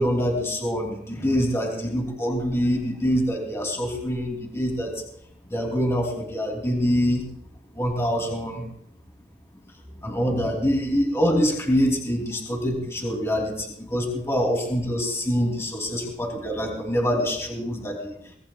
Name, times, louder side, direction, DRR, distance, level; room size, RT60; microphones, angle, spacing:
voice 1, 0.0-5.0 5.5-7.3 7.7-8.7 9.9-18.2, equal, 15° left, 0 dB, 3.0 m, -25 dB
24.0 x 19.0 x 2.4 m, 0.71 s
head